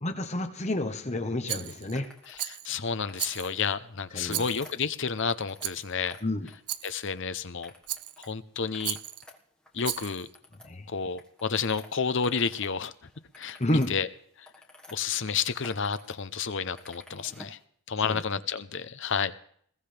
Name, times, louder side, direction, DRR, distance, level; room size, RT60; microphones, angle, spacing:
voice 1, 0.0-2.1 4.1-4.4 6.2-6.5 10.6-10.9 13.6-13.9 18.0-18.2, left 1 dB, 30° left, 6 dB, 1.2 m, -30 dB
Rattle, 1.5-2.0 2.4-2.7 3.2-3.7 4.3-4.9 5.6-5.9 6.7-7.1 7.9-8.3 8.8-9.3 9.8-10.3, right 14 dB, 85° right, 0.6 m, -35 dB
sound 1, 1.9-2.5 2.9-3.5 4.0-5.8 6.0-7.2 7.6-8.3 8.6-12.7 13.0-15.0 15.4-16.2 16.4-17.6, left 2 dB, 5° left, 1.6 m, -52 dB
voice 2, 2.4-6.2 6.8-7.7 8.2-9.0 9.7-10.3 10.9-12.9 13.4-14.1 14.4-14.5 14.9-17.6 17.9-19.3, left 6 dB, 55° left, 13 dB, 0.8 m, -30 dB
21.0 x 17.0 x 3.4 m, 0.62 s
head